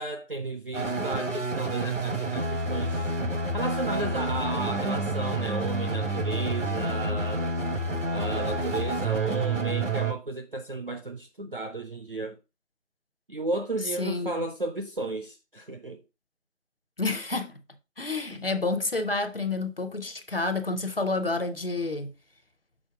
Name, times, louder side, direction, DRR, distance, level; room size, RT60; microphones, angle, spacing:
voice 1, 0.0-3.1 3.5-7.5 8.1-12.4 13.3-16.0 18.3-18.4, right 2 dB, 45° right, 0.6 m, -33 dB
sound 1, 0.7-10.1, right 2 dB, 70° right, 1.3 m, -29 dB
voice 2, 14.0-14.3 17.0-17.5 18.0-22.1, left 3 dB, 45° left, 0.7 m, -29 dB
6.3 x 3.9 x 4.8 m
figure-of-eight pair, 170°, 38 cm